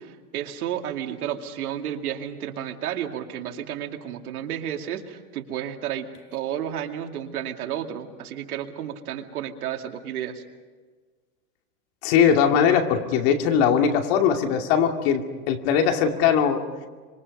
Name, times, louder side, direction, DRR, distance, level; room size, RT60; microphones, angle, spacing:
voice 1, 0.0-10.4, right 10 dB, 85° right, 4 dB, 2.5 m, -32 dB
voice 2, 12.0-16.6, left 7 dB, 45° left, 4 dB, 2.6 m, -20 dB
26.0 x 25.5 x 5.4 m, 1.4 s
supercardioid pair, 160°, 43 cm